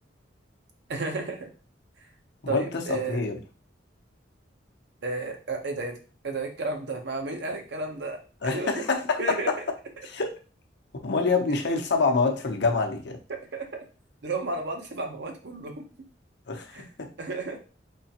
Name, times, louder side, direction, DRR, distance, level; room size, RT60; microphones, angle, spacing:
voice 1, 0.9-1.5 2.5-3.2 5.0-5.9 6.2-8.2 8.4-8.8 9.2-9.5 13.4-13.7 14.2-15.9 16.7-16.8 17.2-17.6, right 3 dB, 65° right, 4 dB, 0.8 m, -32 dB
voice 2, 2.4-3.4 8.4-9.6 10.0-10.4 11.0-13.2 16.5-17.1, left 4 dB, 65° left, 3 dB, 0.7 m, -26 dB
3.6 x 3.3 x 2.8 m, 0.36 s
head